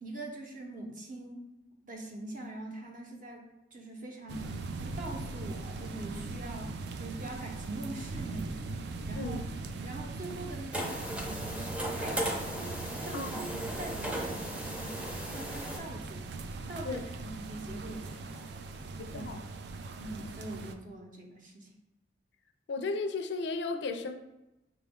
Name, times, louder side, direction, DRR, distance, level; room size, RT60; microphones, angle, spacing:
voice 1, 0.0-1.5 1.8-8.7 9.1-9.4 9.8-12.5 12.9-16.4 16.7-18.6 19.1-19.3 20.0-21.7, right 1 dB, 50° right, 1 dB, 0.8 m, -43 dB
sound 1, 4.3-20.7, right 3 dB, 65° right, 0.3 m, -40 dB
sound 2, 10.7-15.8, right 1 dB, 10° right, 0.5 m, -36 dB
voice 2, 19.0-19.4 22.7-24.2, left 3 dB, 65° left, 7 dB, 0.4 m, -34 dB
5.8 x 2.3 x 3.5 m, 0.98 s
head